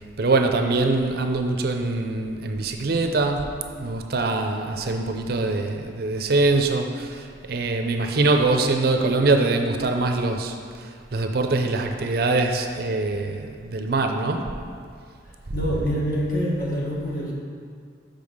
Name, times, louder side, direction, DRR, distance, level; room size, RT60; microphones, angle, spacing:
voice 1, 0.2-14.5, right 3 dB, 50° right, 5 dB, 0.5 m, -23 dB
voice 2, 15.5-17.3, equal, 45° left, -4 dB, 1.4 m, -25 dB
5.4 x 5.2 x 6.4 m, 2.2 s
head